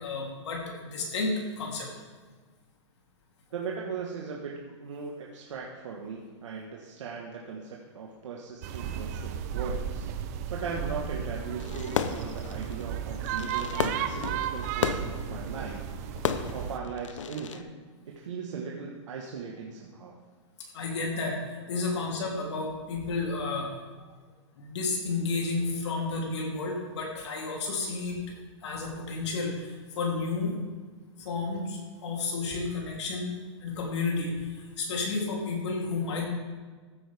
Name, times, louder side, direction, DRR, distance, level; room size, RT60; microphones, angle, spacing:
voice 1, 0.0-1.9 20.7-23.7 24.6-28.2 28.6-30.6 31.2-33.4 33.6-36.3, left 3 dB, 65° left, -1 dB, 3.2 m, -31 dB
voice 2, 3.5-10.1 10.5-15.9 16.5-17.7 18.1-20.2, right 5 dB, 80° right, -1 dB, 1.5 m, -38 dB
sound 1, 8.6-16.8, right 8 dB, 30° right, 0.6 m, -34 dB
Fireworks, 11.6-17.6, left 7 dB, 90° left, 0.8 m, -34 dB
14.5 x 8.6 x 3.5 m, 1.4 s
hypercardioid pair, 165°, 16 cm